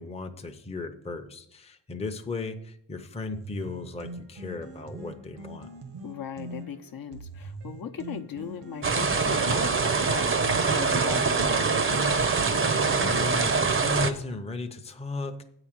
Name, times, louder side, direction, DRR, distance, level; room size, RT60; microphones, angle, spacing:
voice 1, 0.0-5.7 12.3-15.5, left 3 dB, 15° left, 5 dB, 0.7 m, -36 dB
sound 1, 3.3-13.4, right 1 dB, 85° right, 1.4 m, -43 dB
voice 2, 6.0-11.8, left 7 dB, 55° left, 6 dB, 0.8 m, -38 dB
sound 2, 8.8-14.1, right 4 dB, 30° right, 0.7 m, -24 dB
8.3 x 4.9 x 7.3 m, 0.72 s
cardioid pair, 100°, 41 cm